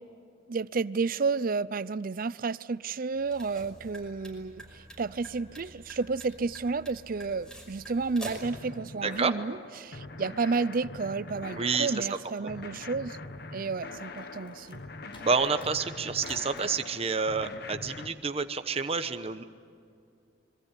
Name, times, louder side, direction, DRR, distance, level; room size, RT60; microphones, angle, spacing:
voice 1, 0.5-13.2 13.5-14.8, right 4 dB, 50° right, 0.5 m, -31 dB
sound 1, 3.1-8.6, right 1 dB, 5° left, 5.5 m, -47 dB
sound 2, 8.4-18.1, left 3 dB, 60° left, 1.4 m, -43 dB
voice 2, 9.0-9.3 11.6-12.1 15.2-19.4, right 5 dB, 35° right, 1.0 m, -29 dB
sound 3, 13.8-16.7, left 1 dB, 30° left, 4.9 m, -53 dB
26.0 x 22.5 x 8.3 m
head